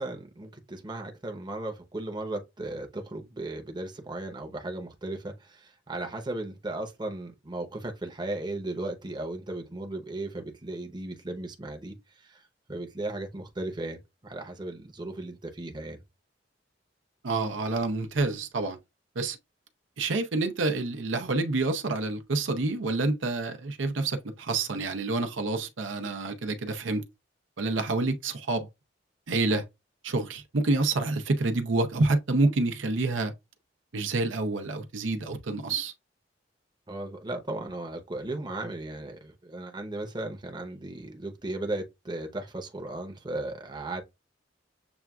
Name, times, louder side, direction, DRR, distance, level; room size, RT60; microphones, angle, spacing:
voice 1, 0.0-12.4 12.7-16.0 36.9-44.0, right 2 dB, 25° right, 0.7 m, -36 dB
voice 2, 17.2-18.8 19.2-19.4 20.0-27.0 27.6-28.7 29.3-29.6 30.0-33.3 33.9-35.9, right 3 dB, 85° right, 0.6 m, -28 dB
7.0 x 2.3 x 2.3 m
head